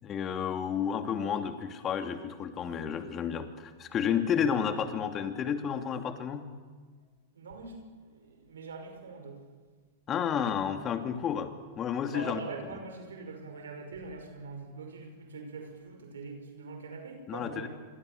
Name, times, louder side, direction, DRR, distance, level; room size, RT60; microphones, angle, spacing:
voice 1, 0.0-6.4 10.1-11.5 11.8-12.4 17.3-17.7, left 8 dB, 30° left, 7 dB, 2.9 m, -31 dB
voice 2, 7.3-9.4 12.1-17.7, right 4 dB, 80° right, 4 dB, 5.5 m, -43 dB
27.0 x 23.0 x 6.9 m, 1.5 s
hypercardioid pair, 105°, 0 cm